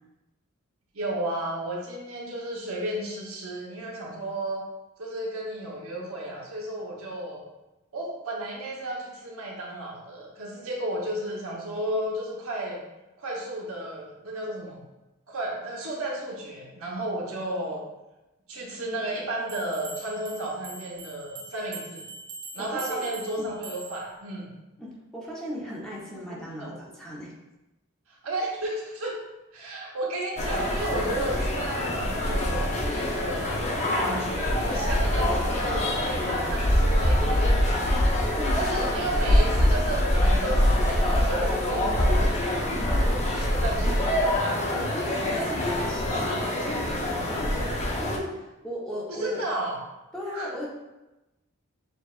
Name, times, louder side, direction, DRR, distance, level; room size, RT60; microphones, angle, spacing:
voice 1, 0.9-4.7 5.0-7.4 7.9-12.8 13.2-14.8 15.3-17.8 18.5-22.1 22.5-24.5 26.3-26.7 28.1-29.1 29.5-37.6 38.5-44.2 49.2-49.8 50.3-50.5, right 1 dB, 75° right, -3 dB, 1.0 m, -33 dB
sound 1, 19.5-24.1, right 3 dB, 55° right, 0.8 m, -42 dB
voice 2, 22.6-23.1 23.4-23.5 24.8-27.3 38.3-38.9 39.4-39.5 44.7-49.4 50.1-50.7, equal, 5° left, -6 dB, 0.9 m, -37 dB
sound 2, 30.4-48.2, left 1 dB, 35° left, 0.6 m, -24 dB
7.0 x 2.4 x 2.4 m, 1.0 s
head